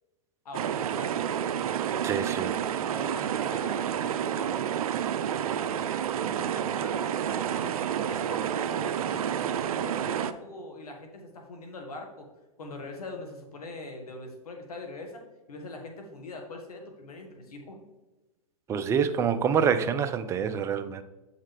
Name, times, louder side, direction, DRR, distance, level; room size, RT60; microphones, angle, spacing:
voice 1, 0.4-1.2 2.8-4.7 6.4-12.3 12.6-15.2 15.5-17.8, left 2 dB, 80° left, 2 dB, 1.6 m, -42 dB
sound 1, 0.5-10.3, right 9 dB, 70° right, 0.5 m, -29 dB
voice 2, 2.0-2.5 18.7-21.0, right 7 dB, 15° right, 10 dB, 0.4 m, -26 dB
7.3 x 5.7 x 3.3 m, 1.1 s
hypercardioid pair, 120°, 19 cm